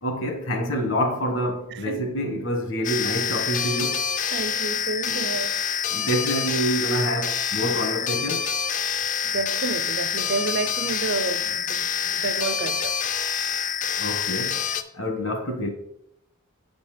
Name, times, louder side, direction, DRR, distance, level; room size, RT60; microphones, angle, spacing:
voice 1, 0.0-4.0 5.1-5.3 5.9-8.5 14.0-14.6 14.9-15.7, equal, 60° left, 1.3 m, -27 dB
voice 2, 1.7-2.1 4.3-5.6 9.2-13.0, right 4 dB, 50° right, 0.4 m, -30 dB
sound 1, 2.8-14.8, left 8 dB, 35° left, 0.4 m, -27 dB
7.3 x 4.1 x 5.0 m
head